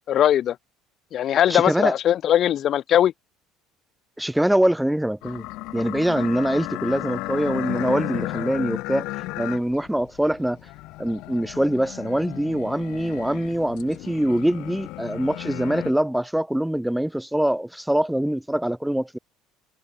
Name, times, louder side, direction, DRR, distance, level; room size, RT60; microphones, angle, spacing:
voice 1, 0.1-0.6 1.1-3.1, left 11 dB, 50° left, 0.3 m, -20 dB
voice 2, 1.5-1.9 4.2-5.4 5.7-9.1 9.4-10.6 11.0-19.2, right 1 dB, 5° right, 0.7 m, -23 dB
sound 1, 5.2-15.9, left 21 dB, 70° left, 3.4 m, -34 dB
supercardioid pair, 85°, 0 cm